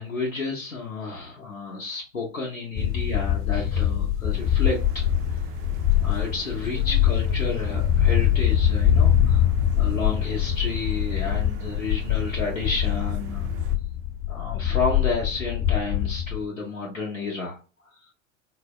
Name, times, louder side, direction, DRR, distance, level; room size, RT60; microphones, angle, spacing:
voice 1, 0.0-5.0 5.3-5.4 6.0-13.5 14.3-18.0, left 3 dB, 90° left, -4 dB, 0.7 m, -31 dB
sound 1, 2.8-16.4, left 11 dB, 45° left, 0.8 m, -23 dB
sound 2, 4.3-13.8, right 9 dB, 30° right, 0.4 m, -40 dB
3.9 x 2.0 x 2.2 m, 0.34 s
figure-of-eight pair, 80°, 39 cm